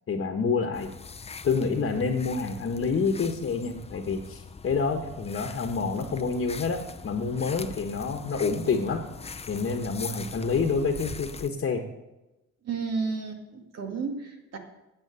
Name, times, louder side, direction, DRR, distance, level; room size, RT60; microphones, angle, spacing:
voice 1, 0.1-0.9 1.4-9.0 9.5-11.8, left 4 dB, 45° left, 3 dB, 1.3 m, -28 dB
sound 1, 0.7-11.5, left 5 dB, 20° left, 0.6 m, -42 dB
voice 2, 12.6-14.6, right 4 dB, 55° right, 4 dB, 2.2 m, -32 dB
9.6 x 7.5 x 8.8 m, 0.99 s
cardioid pair, 110°, 30 cm